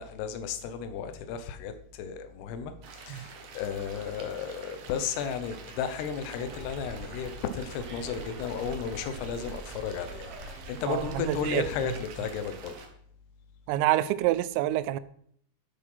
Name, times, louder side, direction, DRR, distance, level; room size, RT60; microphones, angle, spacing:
voice 1, 0.0-12.7, left 7 dB, 75° left, 9 dB, 2.5 m, -34 dB
sound 1, 2.8-12.9, right 5 dB, 65° right, 2.0 m, -47 dB
Bus, 6.4-11.4, right 2 dB, 45° right, 3.5 m, -44 dB
voice 2, 10.9-11.7 13.7-15.0, right 14 dB, 85° right, 16 dB, 3.3 m, -27 dB
11.5 x 8.0 x 5.6 m, 0.64 s
omnidirectional pair, 5.8 m